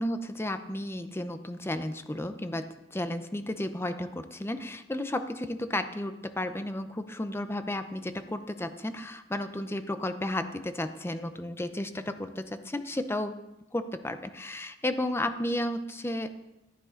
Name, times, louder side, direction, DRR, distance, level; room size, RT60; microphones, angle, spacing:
voice 1, 0.0-13.3 13.7-16.3, left 1 dB, 15° left, 9 dB, 0.7 m, -33 dB
14.5 x 9.7 x 3.9 m, 0.92 s
head